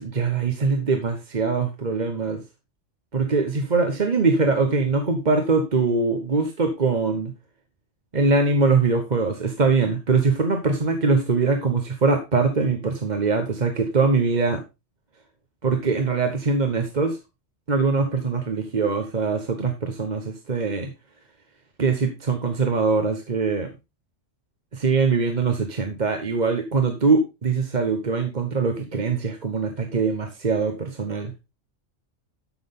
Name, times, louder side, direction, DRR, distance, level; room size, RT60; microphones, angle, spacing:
voice 1, 0.0-2.4 3.1-7.3 8.1-14.6 15.6-17.2 17.7-20.9 21.8-23.7 24.7-31.3, right 4 dB, 40° right, 5 dB, 1.1 m, -22 dB
13.0 x 6.2 x 3.7 m, 0.25 s
omnidirectional pair, 1.2 m